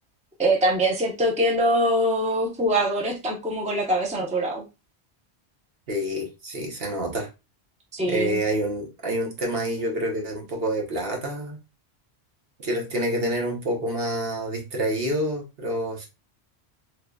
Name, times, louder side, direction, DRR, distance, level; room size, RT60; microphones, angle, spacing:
voice 1, 0.4-4.6 7.9-8.4, right 1 dB, 10° right, 0 dB, 0.7 m, -23 dB
voice 2, 5.9-7.3 8.1-11.6 12.6-16.1, right 1 dB, 60° right, 0 dB, 1.2 m, -27 dB
3.7 x 3.2 x 2.2 m, 0.27 s
omnidirectional pair, 1.1 m